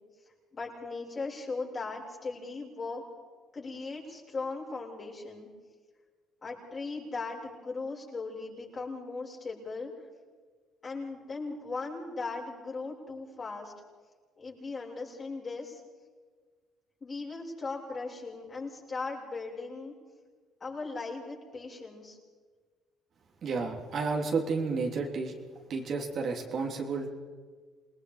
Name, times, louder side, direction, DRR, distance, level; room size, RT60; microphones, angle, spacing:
voice 1, 0.5-3.0 3.5-5.5 6.4-9.9 10.8-13.7 14.4-15.8 17.0-19.9 20.6-22.2, left 3 dB, 35° left, -2 dB, 7.3 m, -38 dB
voice 2, 23.4-25.3 25.7-27.1, right 4 dB, 55° right, 1 dB, 3.4 m, -31 dB
28.0 x 20.0 x 5.1 m, 1.5 s
cardioid pair, 90°, 0 cm